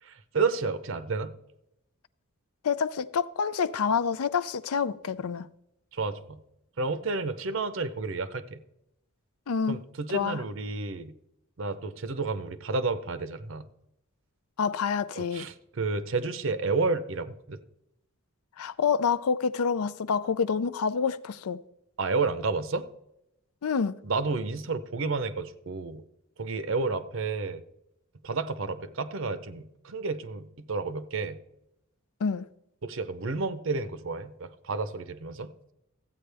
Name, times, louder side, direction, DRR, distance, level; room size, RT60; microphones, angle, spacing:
voice 1, 0.0-1.3 5.9-6.4 6.8-8.6 9.7-11.1 11.6-13.6 15.2-17.6 22.0-22.9 24.0-26.0 26.4-27.6 28.2-31.4 32.8-35.5, right 3 dB, 60° right, 0.7 m, -31 dB
voice 2, 2.6-5.5 9.5-9.8 10.1-10.4 14.6-15.5 18.6-21.6 23.6-24.0 32.2-32.5, left 6 dB, 85° left, 0.5 m, -27 dB
14.0 x 8.8 x 3.4 m
head